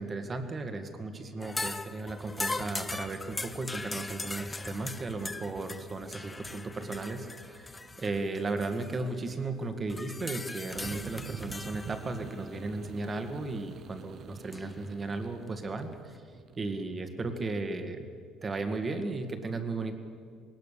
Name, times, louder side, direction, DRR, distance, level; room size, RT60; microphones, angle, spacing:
voice 1, 0.0-16.2 16.6-18.1 18.4-19.9, right 3 dB, 25° right, 7 dB, 1.9 m, -35 dB
sound 1, 1.4-9.4 9.9-12.7 14.5-14.8 15.9-16.0, left 2 dB, 15° left, 0.6 m, -40 dB
sound 2, 10.7-17.3, right 8 dB, 45° right, 0.7 m, -47 dB
20.5 x 18.5 x 6.9 m, 2.1 s
cardioid pair, 125°, 0 cm